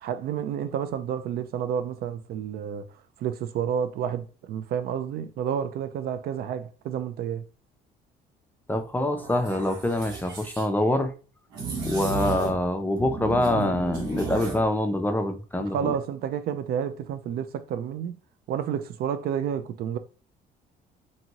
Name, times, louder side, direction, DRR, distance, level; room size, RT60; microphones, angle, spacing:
voice 1, 0.0-2.9 3.2-7.4 15.6-18.2 18.5-20.0, right 8 dB, 65° right, 0.4 m, -30 dB
voice 2, 8.7-11.1 11.9-15.9, left 1 dB, 10° left, 0.4 m, -25 dB
sound 1, 9.2-10.7 11.5-12.7 13.0-14.7, right 4 dB, 85° right, 1.0 m, -33 dB
2.7 x 2.6 x 2.9 m
cardioid pair, 110°, 17 cm